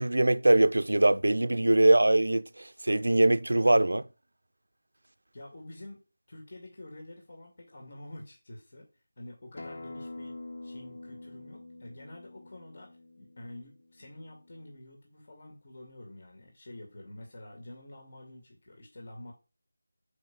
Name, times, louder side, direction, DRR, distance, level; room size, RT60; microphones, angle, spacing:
voice 1, 0.0-4.0, right 1 dB, 85° right, 0.6 m, -22 dB
voice 2, 5.3-8.9 9.2-19.3, left 1 dB, 40° left, 2.2 m, -48 dB
Acoustic guitar, 9.6-14.8, left 2 dB, 55° left, 0.8 m, -46 dB
6.4 x 5.1 x 5.9 m
figure-of-eight pair, 175°, 0 cm